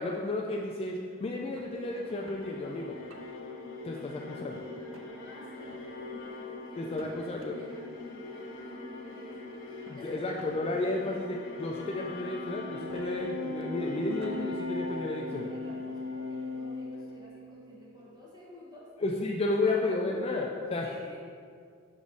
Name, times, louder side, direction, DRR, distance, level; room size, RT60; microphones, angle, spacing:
voice 1, 0.0-3.0 3.8-4.6 6.8-7.6 9.9-15.5 19.0-20.9, left 2 dB, 25° left, -1 dB, 0.3 m, -32 dB
sound 1, 1.5-17.8, left 2 dB, 65° left, 0.9 m, -40 dB
sound 2, 1.5-2.4 2.9-3.5 3.9-4.5 4.9-5.1 5.6-5.8 6.8-7.4 8.5-8.6 9.7-10.6 11.0-11.1 11.8-12.2 12.7-13.0 13.6-13.7 13.9-14.4, right 2 dB, 60° right, 0.5 m, -53 dB
voice 2, 3.9-10.2 14.2-14.3 15.0-18.9 19.5-20.3 20.8-21.4, left 2 dB, 20° right, -6 dB, 1.4 m, -52 dB
6.3 x 3.1 x 5.3 m, 2.2 s
head